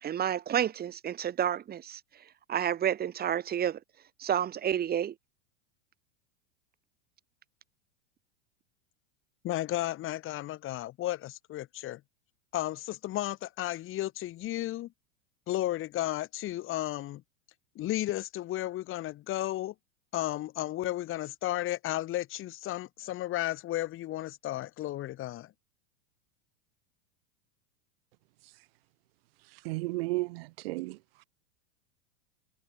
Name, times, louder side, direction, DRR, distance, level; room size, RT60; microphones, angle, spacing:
voice 1, 0.0-2.0 2.5-3.8 4.2-5.1, right 10 dB, 30° right, 2.9 m, -30 dB
voice 2, 9.4-12.0 12.5-14.9 15.5-17.2 17.7-19.7 20.1-25.5, left 15 dB, 40° left, 3.3 m, -33 dB
voice 3, 29.5-31.2, right 22 dB, 65° right, 1.1 m, -34 dB
supercardioid pair, 115°, 32 cm